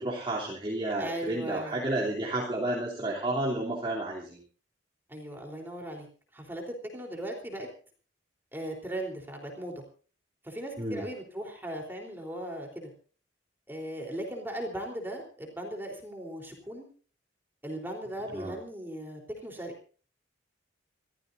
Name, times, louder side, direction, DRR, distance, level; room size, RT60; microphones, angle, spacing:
voice 1, 0.0-4.4 10.8-11.0 18.3-18.5, right 1 dB, 25° right, -5 dB, 3.2 m, -31 dB
voice 2, 1.0-1.8 5.1-6.1 6.3-7.7 8.5-9.8 10.4-12.9 13.7-16.9 17.6-19.7, right 1 dB, 10° right, 1 dB, 3.7 m, -38 dB
28.0 x 15.0 x 2.7 m, 0.40 s
head